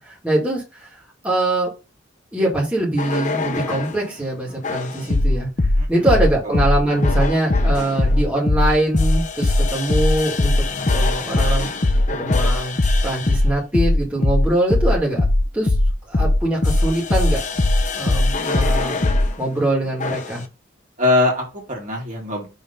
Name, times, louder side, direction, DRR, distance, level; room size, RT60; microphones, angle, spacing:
voice 1, 0.1-0.9 1.2-1.7 2.3-5.5 5.9-10.5 10.9-11.7 12.2-12.8 13.0-15.3 15.5-15.7 16.1-17.6 17.9-19.0 19.4-20.4, right 1 dB, 10° right, -5 dB, 2.0 m, -22 dB
sound 1, 3.0-4.0 4.6-19.3 20.0-20.4, left 2 dB, 40° left, 0.7 m, -19 dB
voice 2, 5.8-6.1 6.4-6.6 21.0-22.5, left 2 dB, 45° right, -1 dB, 2.3 m, -22 dB
5.7 x 3.5 x 5.3 m, 0.29 s
head